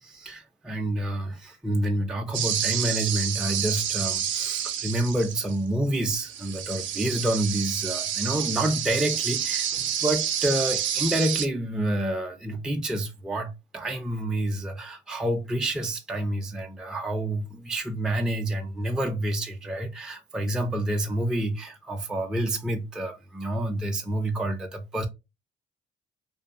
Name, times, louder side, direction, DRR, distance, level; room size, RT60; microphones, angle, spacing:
voice 1, 0.0-9.7 10.0-25.1, right 1 dB, 5° right, 0.4 m, -28 dB
sound 1, 2.3-5.7 6.1-11.5, right 9 dB, 75° right, 0.4 m, -29 dB
2.5 x 2.3 x 2.5 m
cardioid pair, 90°, 20 cm